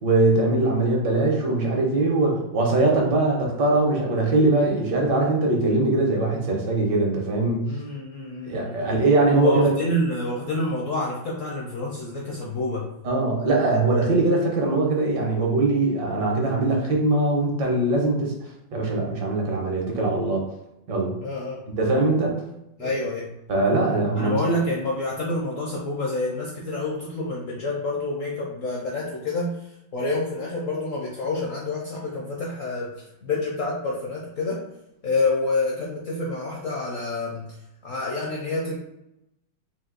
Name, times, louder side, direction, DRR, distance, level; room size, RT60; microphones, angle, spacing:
voice 1, 0.0-7.7 8.4-9.8 13.0-20.4 20.9-21.2 21.8-22.4 22.8-22.9 23.5-24.4, right 2 dB, 65° right, -1 dB, 1.5 m, -22 dB
voice 2, 7.6-8.8 9.3-12.9 21.2-21.6 22.8-23.3 24.2-34.6 35.0-37.6 37.8-38.8, left 2 dB, 60° left, -3 dB, 0.8 m, -28 dB
4.4 x 2.7 x 3.8 m, 0.85 s
omnidirectional pair, 2.1 m